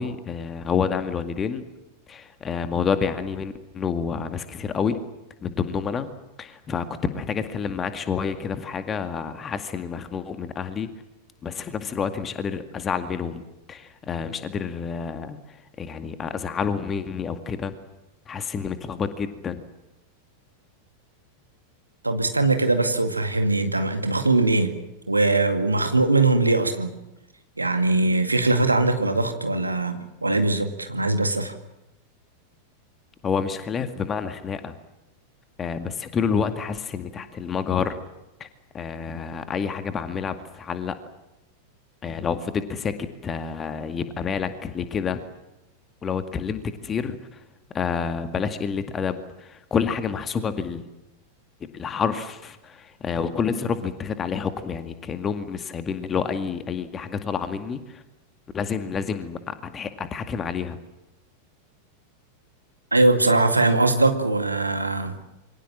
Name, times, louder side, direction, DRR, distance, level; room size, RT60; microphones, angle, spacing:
voice 1, 0.0-1.6 2.1-5.0 5.4-6.1 6.4-10.9 11.4-13.4 13.7-17.7 18.3-19.6 33.2-34.7 35.6-38.0 38.7-41.0 42.0-45.2 46.0-47.2 47.7-50.8 51.6-58.0 58.5-60.8, left 6 dB, 20° left, 9 dB, 2.1 m, -28 dB
voice 2, 22.0-24.7 25.1-26.9 27.6-31.5 62.9-65.2, right 2 dB, 80° right, 7 dB, 2.2 m, -21 dB
27.5 x 24.0 x 7.5 m, 0.95 s
figure-of-eight pair, 90°, 0 cm